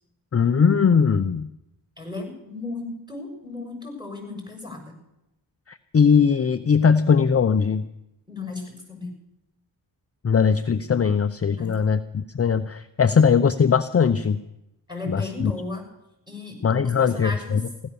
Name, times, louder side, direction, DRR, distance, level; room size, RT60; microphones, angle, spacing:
voice 1, 0.3-1.5 5.7-7.9 10.2-14.4 15.1-15.5 16.6-17.6, left 6 dB, 30° left, 10 dB, 0.7 m, -20 dB
voice 2, 2.0-5.0 8.3-9.1 11.6-11.8 14.9-15.8 16.3-17.6, left 3 dB, 10° right, 4 dB, 6.8 m, -35 dB
16.0 x 12.5 x 7.0 m, 0.87 s
cardioid pair, 50°, 45 cm